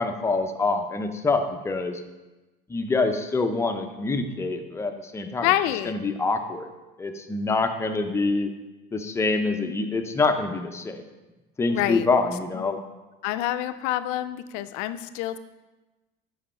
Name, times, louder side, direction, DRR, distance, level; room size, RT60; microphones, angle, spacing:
voice 1, 0.0-2.0 2.7-5.5 5.9-6.7 7.0-8.5 8.9-11.0 11.6-12.8, left 3 dB, 15° left, 6 dB, 0.5 m, -25 dB
voice 2, 5.4-5.9 11.7-12.1 12.5-12.8 13.2-15.4, left 13 dB, 85° left, 12 dB, 0.5 m, -27 dB
7.5 x 5.5 x 4.3 m, 1.1 s
cardioid pair, 140°, 20 cm